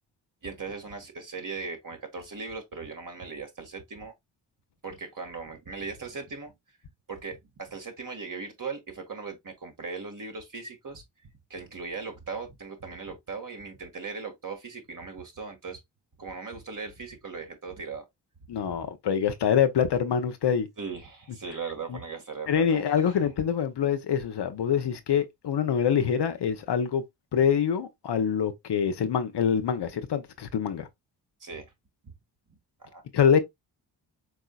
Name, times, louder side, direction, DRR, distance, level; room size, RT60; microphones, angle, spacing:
voice 1, 0.4-4.1 4.8-6.5 7.1-11.0 11.5-15.8 16.2-18.0 18.8-18.9 20.8-23.2 31.4-31.7 32.0-32.1 32.5-33.0, right 4 dB, 40° right, 1.8 m, -38 dB
voice 2, 18.5-20.7 21.9-22.0 22.5-27.0 27.3-30.9 33.1-33.4, left 8 dB, 55° left, 0.8 m, -25 dB
4.8 x 3.8 x 2.3 m
supercardioid pair, 40°, 48 cm